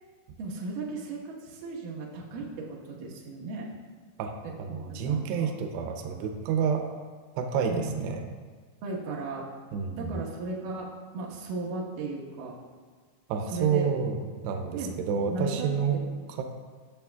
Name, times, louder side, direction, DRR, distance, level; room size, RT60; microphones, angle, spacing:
voice 1, 0.4-3.7 4.4-5.5 7.7-7.9 8.8-9.5 10.0-10.9 11.1-12.5 13.5-13.9 14.7-14.9 15.3-15.7 16.1-16.2, right 3 dB, 65° right, -3 dB, 2.5 m, -36 dB
voice 2, 4.6-6.9 7.4-8.3 9.7-10.2 13.3-14.2 14.4-16.0 16.4-16.5, right 6 dB, 90° right, 4 dB, 2.8 m, -29 dB
15.5 x 6.5 x 2.3 m, 1.5 s
omnidirectional pair, 4.8 m